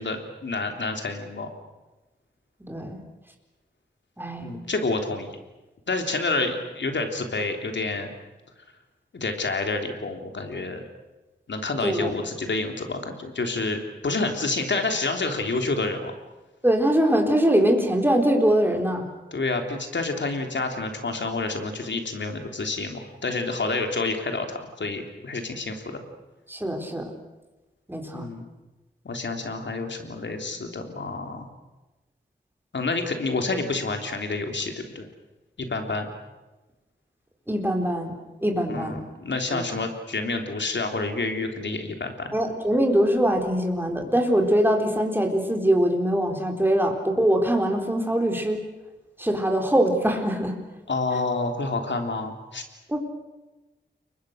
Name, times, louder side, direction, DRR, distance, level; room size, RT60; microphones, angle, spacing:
voice 1, 0.0-1.5 4.4-5.3 5.9-8.1 9.1-10.8 11.5-16.1 19.3-26.0 28.1-28.5 29.1-31.5 32.7-35.1 35.6-36.1 38.7-42.3 50.9-52.6, left 3 dB, 75° left, 5 dB, 3.4 m, -28 dB
voice 2, 2.6-3.0 4.2-4.5 11.8-12.1 16.6-19.0 26.5-27.0 27.9-28.2 37.5-38.1 38.4-39.0 39.5-39.7 42.3-48.6 49.2-50.5 52.9-53.0, right 1 dB, 10° right, 3 dB, 4.2 m, -22 dB
30.0 x 23.0 x 6.6 m, 1.1 s
wide cardioid pair, 95°, 19 cm